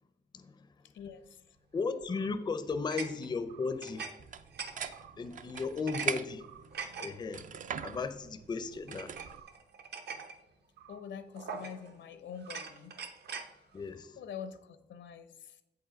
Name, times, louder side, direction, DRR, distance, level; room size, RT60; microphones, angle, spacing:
voice 1, 0.9-1.4 10.9-12.9 14.2-15.6, left 7 dB, 85° left, 0.7 m, -45 dB
voice 2, 1.7-4.2 5.2-6.4 7.0-7.5 7.8-9.1 13.7-14.2, left 4 dB, 25° left, 0.4 m, -35 dB
sound 1, 2.0-2.4 2.9-4.1 4.4-5.1 5.5-6.1 6.4-7.1 7.8-8.0 8.9-10.4 10.8-11.0 11.4-12.0 12.4-13.5, right 5 dB, 65° right, 0.9 m, -43 dB
sound 2, 4.2-9.4, right 7 dB, 45° right, 0.4 m, -41 dB
7.9 x 4.8 x 5.0 m
wide cardioid pair, 150°, 19 cm